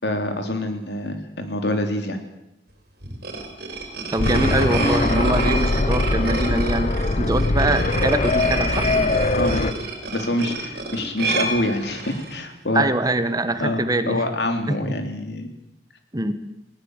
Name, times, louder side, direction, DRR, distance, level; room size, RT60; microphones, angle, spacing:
voice 1, 0.0-2.2 9.3-9.7 10.1-12.9 13.6-13.8 14.1-15.5, left 1 dB, 70° left, 6 dB, 3.4 m, -25 dB
sound 1, 3.0-12.3, right 3 dB, 60° right, 5.1 m, -28 dB
voice 2, 4.1-8.8 12.7-14.2 14.7-14.9 16.1-16.3, right 2 dB, 20° right, 10 dB, 1.4 m, -23 dB
sound 2, 4.2-9.7, left 2 dB, 40° left, 0.8 m, -22 dB
20.5 x 18.5 x 8.1 m, 0.86 s
head